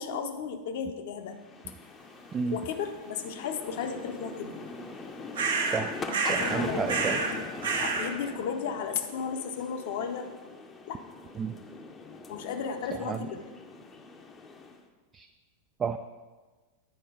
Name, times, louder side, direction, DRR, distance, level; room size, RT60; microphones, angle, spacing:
voice 1, 0.0-1.4 2.5-4.6 6.3-7.5 7.8-10.3 10.9-11.0 12.3-13.4, left 6 dB, 55° left, 7 dB, 0.7 m, -34 dB
sound 1, 1.3-14.8, left 3 dB, 20° left, 0.7 m, -42 dB
sound 2, 5.3-5.8 6.1-6.6 6.9-7.4 7.6-8.1, right 4 dB, 60° right, 0.9 m, -28 dB
voice 2, 5.6-6.0 6.3-7.2 11.4-11.5 12.9-13.3 15.1-15.3 15.8-16.0, right 6 dB, 20° right, 7 dB, 0.3 m, -31 dB
9.3 x 4.6 x 5.0 m, 1.3 s
figure-of-eight pair, 90°, 0 cm